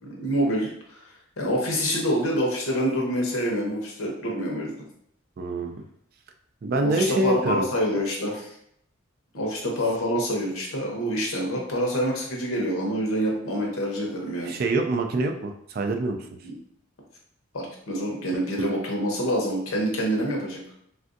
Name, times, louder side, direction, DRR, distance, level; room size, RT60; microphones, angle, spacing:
voice 1, 0.0-1.0 1.4-4.8 6.8-8.5 9.3-14.6 16.4-16.5 17.5-20.6, equal, 80° left, -1 dB, 0.8 m, -26 dB
voice 2, 5.4-5.8 6.6-7.6 14.5-16.3 18.6-18.7, right 2 dB, 45° right, 5 dB, 0.3 m, -25 dB
3.4 x 2.5 x 2.5 m, 0.71 s
head